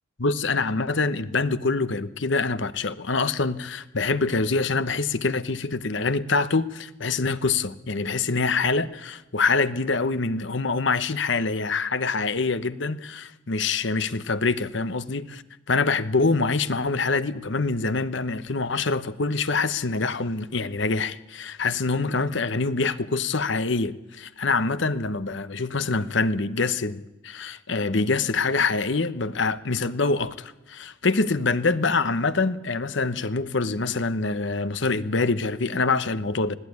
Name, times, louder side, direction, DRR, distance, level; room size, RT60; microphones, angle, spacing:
voice 1, 0.2-15.4 15.7-36.6, left 3 dB, 65° left, 13 dB, 1.0 m, -25 dB
20.5 x 15.0 x 9.5 m, 0.97 s
head